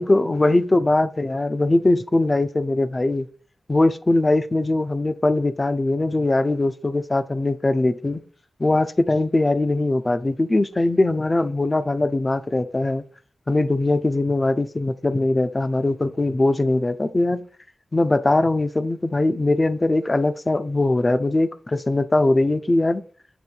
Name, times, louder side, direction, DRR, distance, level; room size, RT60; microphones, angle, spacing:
voice 1, 0.0-3.3 3.7-8.2 8.6-13.0 13.5-17.4 17.9-23.0, left 2 dB, 30° left, 0.6 m, -21 dB
7.9 x 3.1 x 4.5 m
cardioid pair, 65°, 0 cm